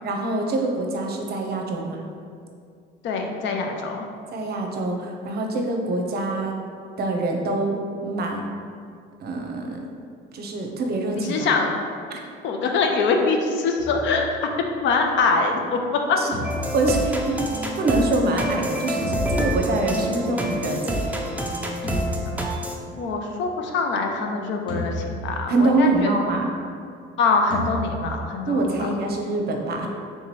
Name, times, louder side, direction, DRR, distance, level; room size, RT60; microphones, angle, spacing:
voice 1, 0.0-2.0 4.3-6.6 7.0-8.4 9.2-9.8 10.3-11.5 12.1-12.2 16.2-16.3 16.7-17.4 17.8-21.0 25.5-26.5 28.5-29.9, right 2 dB, 50° right, 2 dB, 0.7 m, -25 dB
voice 2, 3.0-4.1 11.1-11.7 12.4-14.4 14.8-16.2 22.9-26.1 27.2-28.9, left 4 dB, 65° left, 3 dB, 0.6 m, -23 dB
sound 1, 13.8-15.1 16.3-18.0 19.0-20.4 21.8-23.2 24.7-25.9 27.5-28.9, left 1 dB, 25° left, 1.2 m, -34 dB
sound 2, 16.4-22.7, right 1 dB, 5° right, 0.5 m, -27 dB
3.5 x 3.0 x 4.2 m, 2.3 s
cardioid pair, 95°, 20 cm